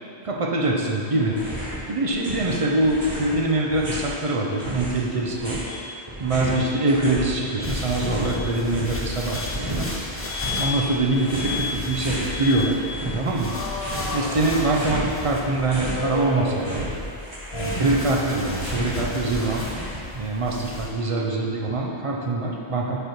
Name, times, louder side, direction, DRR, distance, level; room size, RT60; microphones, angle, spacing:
voice 1, 0.2-1.3 1.9-5.6 6.2-9.9 10.5-13.5 14.1-16.9 17.5-19.7 20.1-23.0, right 2 dB, 45° right, -1 dB, 0.5 m, -24 dB
sound 1, 1.3-1.8 2.1-4.2 4.6-7.3 7.6-9.0 9.5-10.7 11.1-12.3 12.7-14.2 14.5-16.0 16.3-20.2, right 1 dB, 25° right, 1.3 m, -33 dB
Alarm, 5.7-5.9 6.5-6.8 7.4-7.6 8.1-8.5 9.3-9.5 10.2-10.8 11.3-11.8 12.3-12.8 13.4-15.0 15.9-17.1 17.5-18.0 18.3-20.0, left 4 dB, 70° left, 0.8 m, -33 dB
sound 2, 7.6-20.9, left 1 dB, 20° left, 0.4 m, -35 dB
5.2 x 4.3 x 4.5 m, 2.6 s
omnidirectional pair, 1.1 m